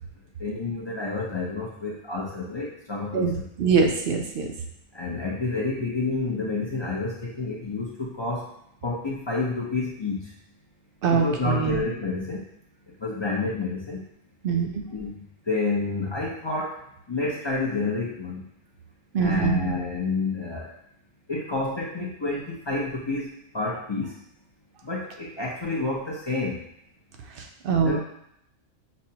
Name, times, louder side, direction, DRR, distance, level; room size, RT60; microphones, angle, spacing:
voice 1, 0.4-3.4 4.9-8.5 8.8-10.3 11.1-12.4 13.0-14.0 14.9-15.2 15.5-18.4 19.2-20.7 21.3-23.3 23.5-24.2 24.8-26.6 27.8-28.0, left 3 dB, 35° left, -5 dB, 0.5 m, -29 dB
voice 2, 3.1-4.5 11.0-11.8 14.4-14.8 19.1-19.7 27.3-28.0, right 5 dB, 60° right, 3 dB, 0.7 m, -24 dB
6.3 x 2.1 x 2.8 m, 0.75 s
omnidirectional pair, 1.3 m